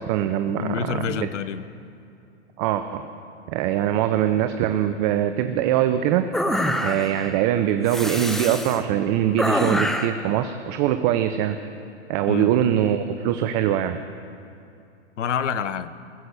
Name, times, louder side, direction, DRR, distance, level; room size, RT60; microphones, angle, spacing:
voice 1, 0.0-1.3 2.6-3.0 3.5-6.3 6.8-11.6 12.1-14.0, right 11 dB, 40° right, 9 dB, 0.7 m, -22 dB
voice 2, 0.6-1.6 12.3-12.5 15.2-15.9, left 8 dB, 80° left, 15 dB, 0.9 m, -27 dB
sound 1, 6.3-7.3 7.9-8.8 9.4-10.2, equal, ahead, 0.4 m, -25 dB
20.0 x 8.0 x 6.7 m, 2.6 s
hypercardioid pair, 115°, 36 cm